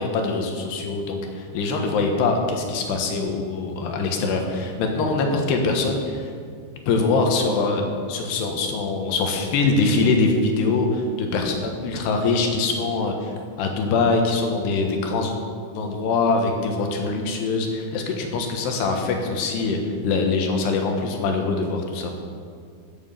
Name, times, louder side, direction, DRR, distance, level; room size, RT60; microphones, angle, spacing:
voice 1, 0.0-6.3 6.9-7.8 8.1-15.3 15.8-22.1, left 3 dB, 85° left, 3 dB, 3.5 m, -23 dB
14.5 x 7.6 x 6.8 m, 2.1 s
omnidirectional pair, 4.7 m